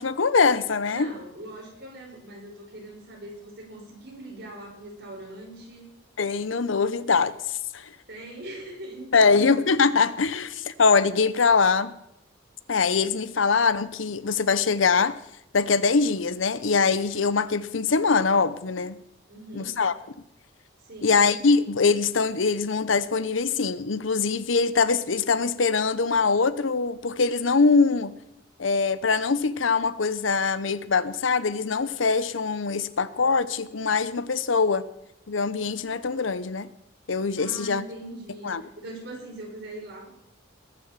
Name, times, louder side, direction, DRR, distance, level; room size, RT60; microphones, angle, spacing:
voice 1, 0.0-1.1 6.2-7.9 9.1-11.9 12.7-15.2 15.5-19.0 19.5-19.9 21.0-28.1 28.6-34.9 35.3-36.7 37.1-37.9 38.4-38.6, left 4 dB, 75° left, 0.8 m, -23 dB
voice 2, 0.9-5.9 8.1-9.4 19.3-19.8 20.8-21.2 37.4-40.1, right 1 dB, 55° right, 5.2 m, -41 dB
20.5 x 7.1 x 7.4 m
head